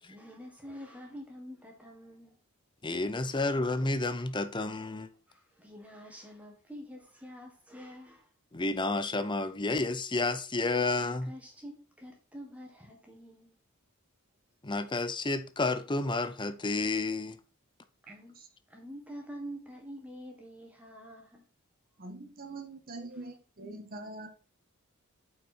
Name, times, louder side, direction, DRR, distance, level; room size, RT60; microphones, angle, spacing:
voice 1, 0.0-2.4 3.4-3.5 5.3-8.3 11.0-13.5 18.0-18.3 18.7-21.4, equal, 5° right, 1.7 m, -47 dB
voice 2, 2.8-5.1 8.5-11.3 14.6-17.4, left 2 dB, 20° left, 0.7 m, -30 dB
voice 3, 18.1-18.5 22.0-24.3, right 2 dB, 45° right, 1.6 m, -44 dB
8.4 x 5.5 x 4.4 m
head